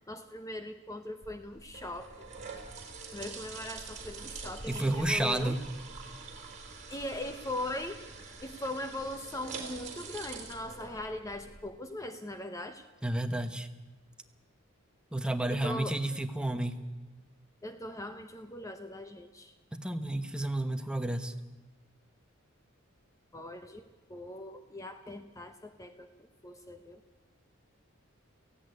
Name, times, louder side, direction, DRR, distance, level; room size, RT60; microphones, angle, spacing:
voice 1, 0.1-2.3 3.1-5.6 6.9-8.0 8.4-12.8 15.5-16.0 17.6-19.6 23.3-23.8 24.1-26.1 26.4-27.0, left 1 dB, 15° left, 8 dB, 0.8 m, -40 dB
sound 1, 1.2-11.6, right 4 dB, 35° right, 3.8 m, -45 dB
voice 2, 4.7-5.6 13.0-13.7 15.1-16.8 19.7-21.3, right 1 dB, 5° right, 7 dB, 1.1 m, -31 dB
17.0 x 15.5 x 9.6 m, 1.2 s
head